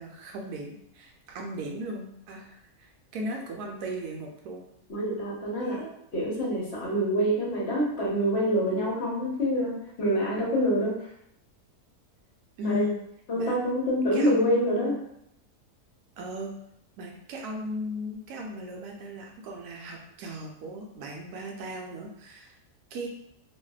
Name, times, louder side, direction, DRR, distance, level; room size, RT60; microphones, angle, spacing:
voice 1, 0.0-4.7 5.6-5.9 12.6-13.0 13.3-13.6 14.1-15.0 16.2-16.5 17.0-22.5 22.9-23.1, left 1 dB, 80° right, 0 dB, 1.1 m, -36 dB
voice 2, 4.9-5.8 6.1-11.0 12.6-12.9 13.3-15.0, equal, 50° left, -5 dB, 1.0 m, -26 dB
2.7 x 2.5 x 2.3 m, 0.74 s
omnidirectional pair, 1.7 m